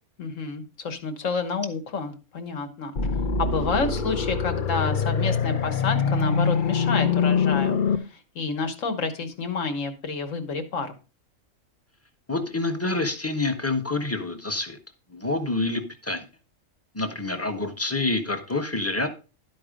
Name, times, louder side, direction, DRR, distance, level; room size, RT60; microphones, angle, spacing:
voice 1, 0.2-2.9 3.4-10.9, left 4 dB, 70° left, 8 dB, 1.6 m, -29 dB
sound 1, 3.0-8.0, left 6 dB, 45° left, 0.8 m, -24 dB
voice 2, 12.3-14.8 15.1-16.3 16.9-19.1, left 2 dB, 10° left, 7 dB, 0.9 m, -27 dB
11.5 x 4.6 x 5.1 m, 0.33 s
omnidirectional pair, 1.4 m